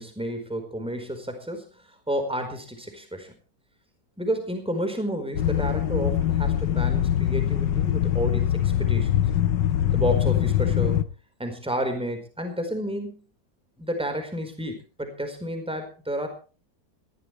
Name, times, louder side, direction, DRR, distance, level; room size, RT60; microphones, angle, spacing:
voice 1, 0.0-1.7 2.1-3.3 4.2-9.1 9.9-11.0 11.4-13.2 13.8-16.3, equal, 5° right, 5 dB, 4.5 m, -31 dB
sound 1, 5.4-11.0, left 11 dB, 85° left, 1.7 m, -23 dB
21.5 x 15.5 x 3.3 m, 0.37 s
omnidirectional pair, 1.9 m